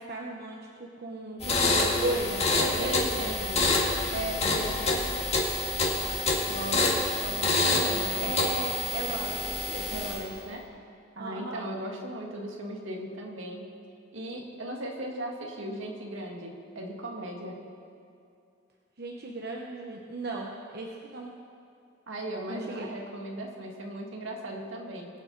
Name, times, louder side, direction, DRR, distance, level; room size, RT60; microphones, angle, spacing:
voice 1, 0.0-3.3 8.2-10.0 11.2-11.6 19.0-21.4 22.5-22.9, right 2 dB, 55° right, 0 dB, 1.0 m, -36 dB
sound 1, 1.4-10.3, left 2 dB, 35° left, 1.8 m, -27 dB
voice 2, 2.6-3.7 4.1-5.1 6.5-6.9 7.2-8.3 9.9-10.7 11.2-13.7 14.1-17.6 22.1-25.1, right 1 dB, 80° right, 0 dB, 1.9 m, -37 dB
22.0 x 8.2 x 4.1 m, 2.6 s
head